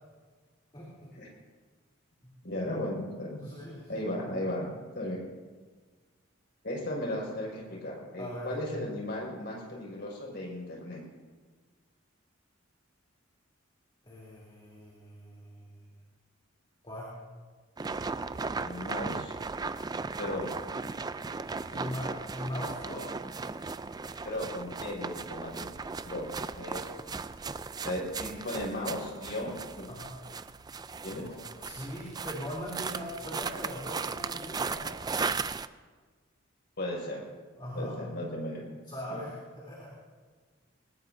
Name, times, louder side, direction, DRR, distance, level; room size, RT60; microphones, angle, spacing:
voice 1, 0.7-1.1 2.2-2.3 3.4-4.0 8.2-8.5 14.1-15.9 16.8-17.1 21.7-23.1 29.9-30.1 31.1-34.9 37.6-38.0 38.9-39.9, equal, 25° left, -6 dB, 3.2 m, -40 dB
voice 2, 2.4-3.4 3.9-4.7 4.9-5.2 6.6-11.0 18.6-19.3 20.2-20.5 21.7-21.9 24.2-25.7 26.0-26.3 26.6-27.1 27.8-29.9 31.0-31.2 31.5-31.6 36.8-37.2 37.7-38.7, left 1 dB, 55° left, -3 dB, 5.6 m, -36 dB
sound 1, 17.8-35.7, right 4 dB, 20° right, 0.3 m, -37 dB
21.0 x 19.5 x 2.7 m, 1.4 s
head